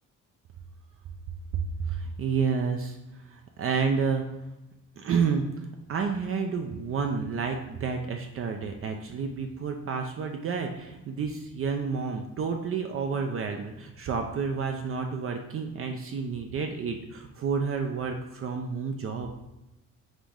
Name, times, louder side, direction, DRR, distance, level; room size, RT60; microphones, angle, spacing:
voice 1, 1.9-3.0 3.3-4.2 5.0-19.3, right 5 dB, 45° right, 4 dB, 0.5 m, -30 dB
5.0 x 2.6 x 3.6 m, 0.94 s
cardioid pair, 90°, 30 cm